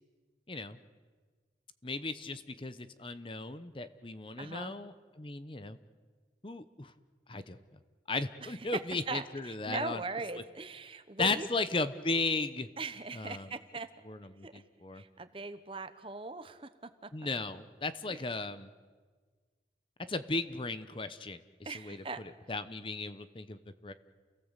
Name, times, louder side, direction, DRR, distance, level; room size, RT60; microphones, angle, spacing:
voice 1, 0.5-0.8 1.8-5.8 6.4-6.9 7.3-7.6 8.1-10.0 11.2-12.7 13.1-13.5 14.0-15.0 17.1-18.7 20.1-23.9, left 3 dB, 30° left, 12 dB, 0.9 m, -36 dB
voice 2, 4.4-4.7 8.4-8.8 9.1-11.5 12.8-13.9 14.4-14.6 14.9-17.3 18.1-18.2 21.6-22.2, right 3 dB, 30° right, 11 dB, 1.1 m, -40 dB
29.5 x 18.0 x 8.2 m, 1.5 s
head